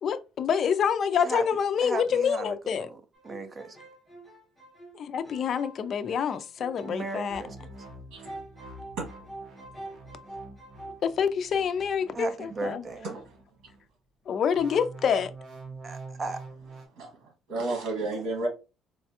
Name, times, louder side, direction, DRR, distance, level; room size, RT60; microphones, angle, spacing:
voice 1, 0.0-2.9 4.9-7.4 11.0-12.9 14.3-15.3, left 7 dB, 45° left, 0.4 m, -27 dB
voice 2, 1.8-3.8 6.8-7.6 12.1-13.2 15.8-16.4, right 3 dB, 30° right, 0.5 m, -36 dB
sound 1, 3.1-8.0 8.2-11.0, right 2 dB, ahead, 1.1 m, -46 dB
sound 2, 7.3-13.8 14.6-16.9, right 3 dB, 50° right, 0.9 m, -46 dB
voice 3, 17.0-18.5, right 2 dB, 75° right, 1.5 m, -32 dB
4.0 x 2.2 x 2.8 m
cardioid pair, 140°, 0 cm